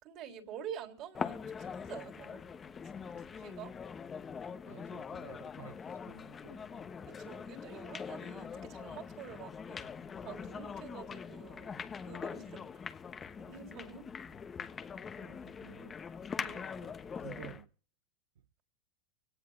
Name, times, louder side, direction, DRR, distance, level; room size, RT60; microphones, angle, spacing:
voice 1, 0.0-2.4 3.2-3.7 7.1-9.9 10.2-12.7 13.2-14.1 16.4-16.7, right 8 dB, 45° right, 3.7 m, -48 dB
sound 1, 1.1-17.6, left 6 dB, 20° left, 1.0 m, -43 dB
voice 2, 4.6-6.9 12.5-12.6 15.2-16.0 16.5-16.9 17.2-17.7, right 12 dB, 85° right, 0.7 m, -53 dB
24.5 x 18.0 x 2.5 m
supercardioid pair, 120°, 0 cm